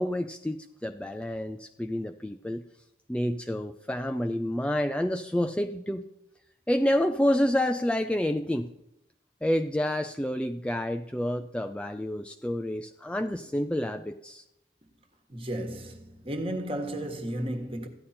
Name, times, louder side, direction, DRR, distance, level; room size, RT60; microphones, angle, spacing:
voice 1, 0.0-2.6 3.1-6.1 6.7-8.7 9.4-14.4, left 1 dB, 5° left, 0.4 m, -28 dB
voice 2, 15.3-17.9, right 1 dB, 30° right, 1.4 m, -34 dB
14.0 x 9.9 x 4.3 m
head